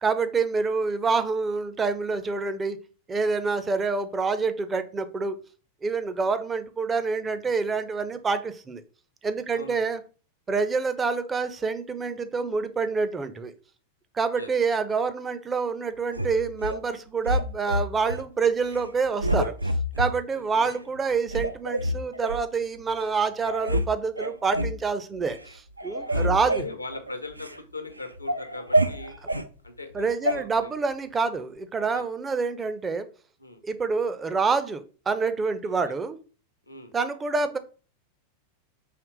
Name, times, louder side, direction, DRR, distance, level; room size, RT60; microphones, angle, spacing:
voice 1, 0.0-2.8 3.1-5.4 5.8-8.8 9.2-10.0 10.5-13.5 14.1-19.5 20.0-26.6 29.9-33.1 33.6-36.2 36.9-37.6, right 4 dB, 20° right, 11 dB, 0.4 m, -27 dB
voice 2, 9.5-9.9 14.4-14.8 20.5-20.8 26.1-29.2 29.6-30.7 31.9-32.0 33.4-33.6 36.7-36.9, left 3 dB, 85° left, 8 dB, 0.6 m, -40 dB
sound 1, 16.1-16.8 17.2-18.2 18.6-18.9 19.2-20.1 20.7-20.8 21.3-22.4 23.0-23.1 23.4-23.9 24.2-24.8 25.2-25.5 25.8-27.6 28.0-29.5 30.3-30.4, equal, 85° right, 0.3 m, -27 dB
4.9 x 3.0 x 3.1 m, 0.37 s
figure-of-eight pair, 90°, 0 cm